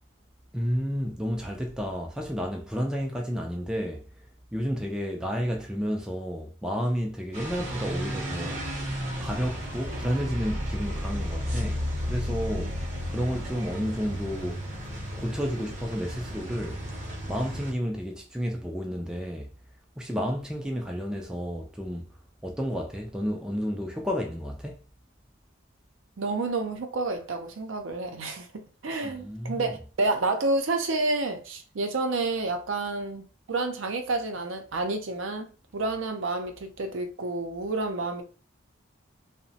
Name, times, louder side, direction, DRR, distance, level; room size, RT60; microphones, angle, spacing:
voice 1, 0.5-4.1 4.5-8.7 9.2-12.8 13.1-14.6 15.1-16.8 17.3-19.5 20.0-22.1 22.4-24.9 29.0-29.7, equal, 5° right, 0.3 m, -31 dB
sound 1, 7.3-17.7, equal, 35° right, 0.7 m, -33 dB
voice 2, 26.2-38.2, right 2 dB, 75° right, 0.5 m, -29 dB
2.9 x 2.1 x 2.7 m
head